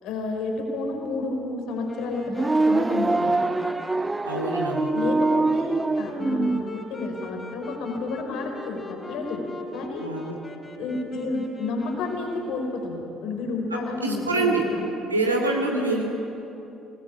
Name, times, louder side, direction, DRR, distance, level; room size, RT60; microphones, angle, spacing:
voice 1, 0.0-3.4 4.9-10.1 10.7-14.8, left 3 dB, 55° left, 2 dB, 4.6 m, -31 dB
Wind instrument woodwind instrument, 1.8-13.0, left 1 dB, 20° left, 3.6 m, -39 dB
sound 1, 2.3-6.7, right 3 dB, 15° right, 0.6 m, -24 dB
voice 2, 4.3-4.9 10.0-10.3 14.0-14.6 15.1-16.1, right 2 dB, 85° right, 1 dB, 2.7 m, -25 dB
25.0 x 19.5 x 8.7 m, 3.0 s
figure-of-eight pair, 50°, 0 cm